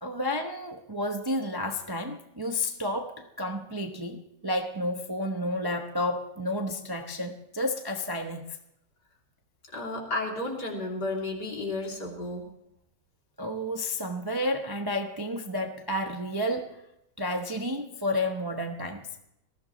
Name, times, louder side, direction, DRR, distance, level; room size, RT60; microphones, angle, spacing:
voice 1, 0.0-8.4 13.4-16.7 17.2-19.1, left 1 dB, 20° right, 4 dB, 0.6 m, -31 dB
voice 2, 9.7-12.5, left 2 dB, 70° left, -1 dB, 3.7 m, -32 dB
19.5 x 15.0 x 3.1 m, 0.82 s
omnidirectional pair, 1.9 m